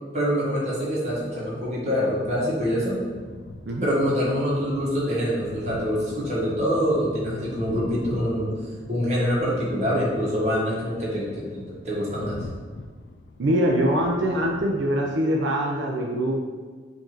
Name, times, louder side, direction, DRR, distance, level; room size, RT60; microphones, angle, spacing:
voice 1, 0.1-3.0 3.8-8.5 8.9-12.4, equal, 35° right, -6 dB, 1.3 m, -25 dB
sound 1, 0.9-15.2, left 2 dB, 60° left, 0.4 m, -42 dB
voice 2, 13.4-16.5, equal, 75° right, -1 dB, 0.4 m, -23 dB
4.5 x 2.7 x 4.5 m, 1.5 s
head